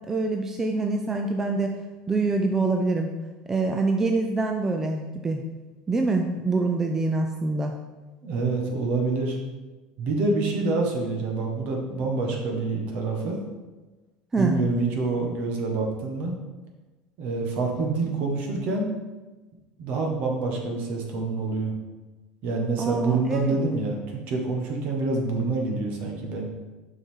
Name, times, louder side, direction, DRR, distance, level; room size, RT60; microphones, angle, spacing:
voice 1, 0.1-1.8 2.1-3.1 3.5-5.4 5.9-7.7 14.3-14.6 22.8-23.6, right 3 dB, 15° right, 3 dB, 0.4 m, -25 dB
voice 2, 8.2-9.4 10.0-13.4 14.4-16.4 17.2-18.9 19.8-21.8 22.4-26.5, right 3 dB, 50° right, 1 dB, 1.5 m, -27 dB
7.1 x 5.5 x 3.7 m, 1.2 s
cardioid pair, 155°, 3 cm